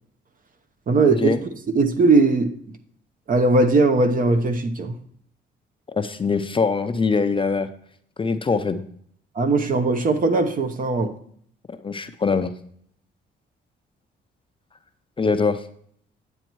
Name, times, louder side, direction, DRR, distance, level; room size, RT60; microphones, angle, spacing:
voice 1, 0.9-2.5 3.3-4.9 9.3-11.1, right 3 dB, 45° right, 7 dB, 0.9 m, -19 dB
voice 2, 5.9-7.7 8.2-8.8 11.8-12.5 15.2-15.7, left 4 dB, 25° left, 10 dB, 0.5 m, -22 dB
8.9 x 8.0 x 3.0 m, 0.63 s
cardioid pair, 90°, 20 cm